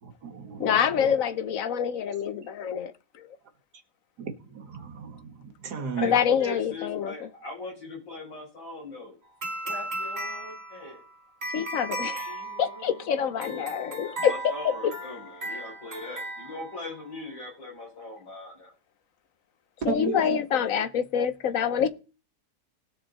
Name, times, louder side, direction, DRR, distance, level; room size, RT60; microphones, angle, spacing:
voice 1, 0.0-1.1 4.2-6.2 19.8-20.4, right 6 dB, 65° right, 2.0 m, -35 dB
voice 2, 0.6-2.9 6.0-7.3 11.5-12.3 12.6-14.5 14.8-14.9 15.5-15.6 19.8-21.9, left 8 dB, 60° left, 1.0 m, -26 dB
voice 3, 6.4-9.1 9.6-11.0 12.2-13.7 14.0-18.7, left 2 dB, 85° left, 6.4 m, -40 dB
sound 1, 9.4-17.1, right 2 dB, 35° right, 2.2 m, -36 dB
19.0 x 6.5 x 4.1 m
omnidirectional pair, 1.9 m